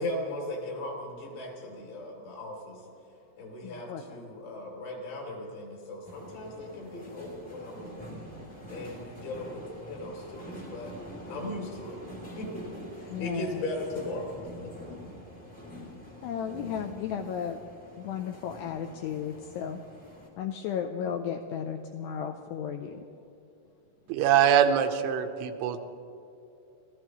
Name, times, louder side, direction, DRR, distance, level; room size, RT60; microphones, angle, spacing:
voice 1, 0.0-2.8 3.4-8.0 8.7-10.9 11.3-12.0 12.4-14.7, left 1 dB, 70° left, -1 dB, 5.1 m, -37 dB
voice 2, 3.6-4.1 13.1-13.6 16.2-17.6 18.0-19.8 20.4-23.1, left 8 dB, 85° left, 4 dB, 2.4 m, -34 dB
sound 1, 6.0-20.3, equal, 10° left, 0.5 m, -45 dB
voice 3, 24.1-25.8, right 9 dB, 85° right, 7 dB, 3.2 m, -23 dB
28.5 x 15.0 x 3.0 m, 2.7 s
omnidirectional pair, 5.5 m